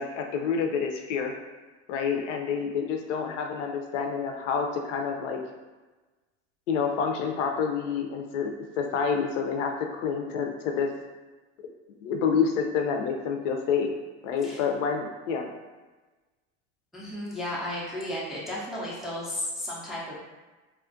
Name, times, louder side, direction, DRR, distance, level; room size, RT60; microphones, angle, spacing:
voice 1, 0.0-1.3 1.9-5.4 6.7-10.9 12.0-13.9 14.2-15.5, left 6 dB, 75° left, 3 dB, 0.5 m, -28 dB
voice 2, 16.9-20.1, left 1 dB, ahead, -6 dB, 0.3 m, -34 dB
2.3 x 2.1 x 2.5 m, 1.2 s
supercardioid pair, 100°, 37 cm